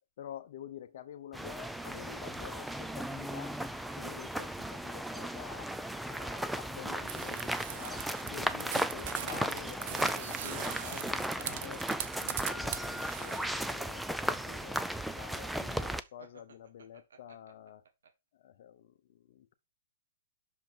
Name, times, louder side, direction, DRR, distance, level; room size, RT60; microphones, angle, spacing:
voice 1, 0.2-3.6 4.0-5.7 6.0-11.9 12.2-14.9 15.1-17.8 18.3-19.5, left 10 dB, 55° left, 0.8 m, -48 dB
sound 1, 1.3-16.0, right 1 dB, ahead, 0.4 m, -36 dB
sound 2, 7.1-13.7, right 11 dB, 45° right, 0.8 m, -41 dB
sound 3, 9.5-12.6 13.9-18.1, right 6 dB, 85° right, 1.6 m, -56 dB
6.0 x 5.7 x 4.4 m
hypercardioid pair, 150°, 0 cm